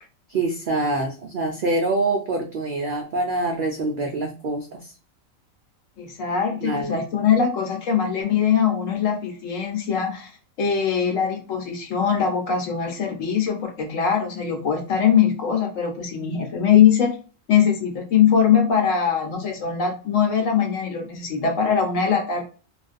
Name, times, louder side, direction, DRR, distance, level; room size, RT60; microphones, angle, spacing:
voice 1, 0.3-4.9 6.6-7.0, right 2 dB, 85° right, 2 dB, 0.4 m, -25 dB
voice 2, 6.0-10.3 10.6-17.2 17.5-22.4, left 7 dB, 70° left, 3 dB, 1.1 m, -21 dB
2.5 x 2.2 x 2.4 m, 0.37 s
omnidirectional pair, 1.4 m